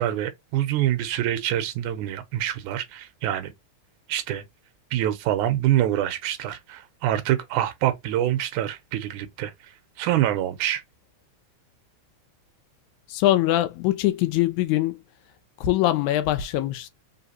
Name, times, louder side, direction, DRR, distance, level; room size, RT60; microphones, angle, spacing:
voice 1, 0.0-3.5 4.1-4.4 4.9-10.8, right 12 dB, 90° right, 2.2 m, -26 dB
voice 2, 13.1-15.0 15.6-16.9, left 15 dB, 80° left, 1.9 m, -22 dB
4.8 x 3.4 x 2.7 m
omnidirectional pair, 3.5 m